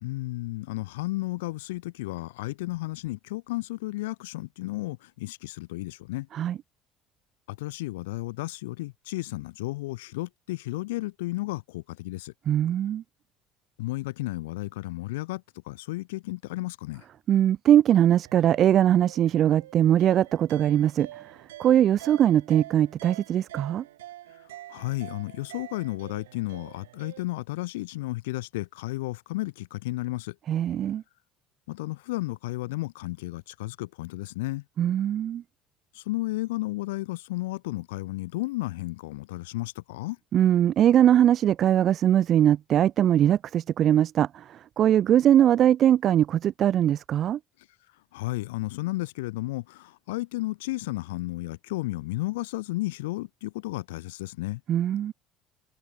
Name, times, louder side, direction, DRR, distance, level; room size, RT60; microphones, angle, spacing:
voice 1, 0.0-6.3 7.5-12.3 13.8-17.0 24.7-30.3 31.7-34.6 35.9-40.2 48.1-54.6, left 20 dB, 80° left, 1.1 m, -33 dB
voice 2, 12.5-13.0 17.3-21.1 21.6-23.8 30.5-31.0 34.8-35.4 40.3-47.4 54.7-55.1, right 10 dB, 50° right, 0.8 m, -21 dB
sound 1, 18.2-27.2, right 14 dB, 85° right, 2.4 m, -46 dB
hypercardioid pair, 65°, 0 cm